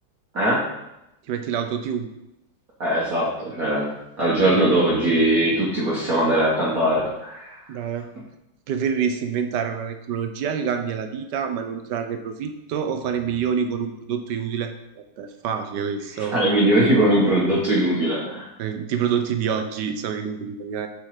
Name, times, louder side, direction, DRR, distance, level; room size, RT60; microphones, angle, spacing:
voice 1, 1.3-2.1 7.7-8.1 8.7-16.4 18.6-20.9, right 7 dB, 65° right, 7 dB, 1.3 m, -27 dB
voice 2, 2.8-3.9 4.2-7.6 16.2-18.5, right 1 dB, 45° right, -6 dB, 1.8 m, -20 dB
7.4 x 5.5 x 4.9 m, 0.88 s
omnidirectional pair, 2.1 m